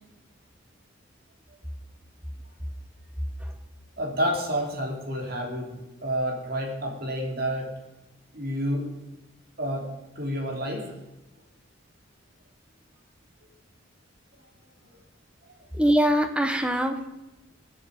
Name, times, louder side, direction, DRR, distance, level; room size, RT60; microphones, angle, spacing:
voice 1, 4.0-7.7 8.3-8.9 9.6-9.9 10.1-10.9, equal, 45° right, 1 dB, 3.0 m, -29 dB
voice 2, 15.7-17.1, equal, 5° right, 6 dB, 1.0 m, -22 dB
19.0 x 7.7 x 4.9 m, 0.99 s
head